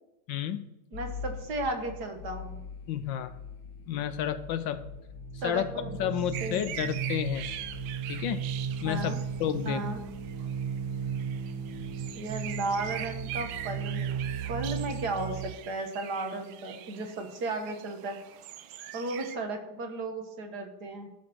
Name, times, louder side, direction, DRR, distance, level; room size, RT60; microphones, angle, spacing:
voice 1, 0.3-0.7 2.9-3.3 3.9-4.9 5.4-7.5 8.1-8.5 8.8-9.1 9.4-9.9, left 10 dB, 75° left, 11 dB, 1.2 m, -31 dB
sound 1, 0.9-11.9, left 7 dB, 60° left, 0.8 m, -46 dB
voice 2, 0.9-2.6 5.4-6.1 6.4-6.7 8.8-9.2 9.6-10.0 12.1-18.2 18.9-21.1, right 2 dB, 55° right, 4 dB, 1.8 m, -35 dB
sound 2, 4.4-15.5, right 7 dB, 20° right, 0.5 m, -36 dB
sound 3, 6.3-19.4, right 11 dB, 80° right, 1.4 m, -43 dB
13.0 x 5.1 x 6.2 m, 0.97 s
omnidirectional pair, 2.2 m